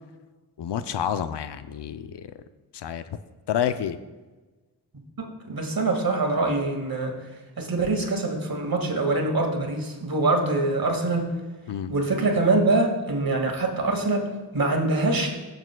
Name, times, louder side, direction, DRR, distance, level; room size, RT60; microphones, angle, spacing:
voice 1, 0.6-2.3 2.7-3.0 3.5-4.0 11.7-11.9, left 9 dB, 65° left, 12 dB, 0.6 m, -29 dB
voice 2, 5.2-7.1 7.6-11.3 11.9-15.4, right 2 dB, 50° right, 2 dB, 1.9 m, -24 dB
16.0 x 6.8 x 2.2 m, 1.2 s
cardioid pair, 40°, 44 cm